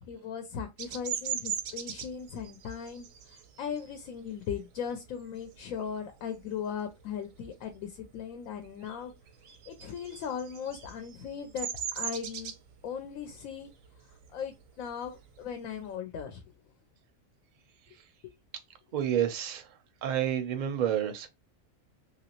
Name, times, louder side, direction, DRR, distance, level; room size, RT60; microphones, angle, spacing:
voice 1, 0.0-9.1 9.7-11.7 12.0-12.5 12.8-13.7 14.3-16.4 18.2-18.3, left 7 dB, 85° left, 1.0 m, -38 dB
Bird vocalization bird call bird song, 0.8-6.0 6.4-6.8 7.1-8.3 8.5-15.9, right 8 dB, 85° right, 1.0 m, -39 dB
voice 2, 18.9-19.6 20.0-21.3, right 10 dB, 55° right, 0.5 m, -29 dB
3.0 x 2.6 x 2.8 m
omnidirectional pair, 1.4 m